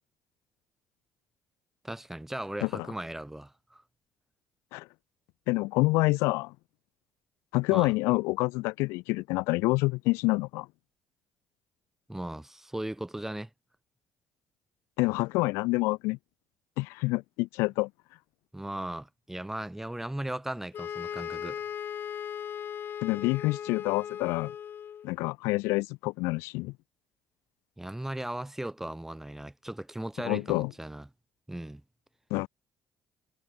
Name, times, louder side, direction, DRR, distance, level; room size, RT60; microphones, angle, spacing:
voice 1, 1.8-3.8 7.7-7.9 12.1-13.5 18.5-21.6 27.8-31.1 31.5-31.8, right 1 dB, 10° right, 5.6 m, -37 dB
voice 2, 5.5-6.5 7.5-10.7 15.0-16.2 16.8-17.9 23.0-24.5 25.0-26.7 30.2-30.7 32.3-32.5, left 24 dB, 85° left, 0.8 m, -27 dB
sound 1, 20.7-25.1, left 9 dB, 55° left, 1.3 m, -37 dB
supercardioid pair, 75°, 4 cm